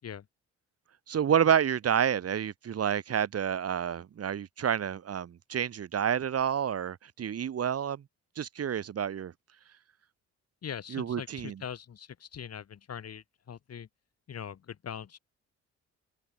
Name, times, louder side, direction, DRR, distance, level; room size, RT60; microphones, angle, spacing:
voice 1, 1.1-8.0 8.4-9.3 10.9-11.5, right 8 dB, 55° right, 2.2 m, -29 dB
voice 2, 10.6-13.9 14.3-15.2, left 8 dB, 55° left, 7.2 m, -41 dB
cardioid pair, 90°, 30 cm